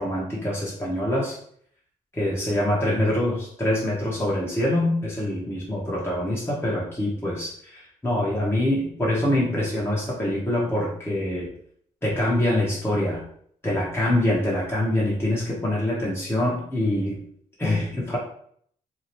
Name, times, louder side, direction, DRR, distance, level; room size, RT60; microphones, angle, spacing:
voice 1, 0.0-1.4 2.1-11.5 12.0-13.2 13.6-17.2 17.6-18.2, left 1 dB, 15° left, -5 dB, 1.1 m, -25 dB
2.8 x 2.3 x 3.1 m, 0.63 s
supercardioid pair, 50°, 16 cm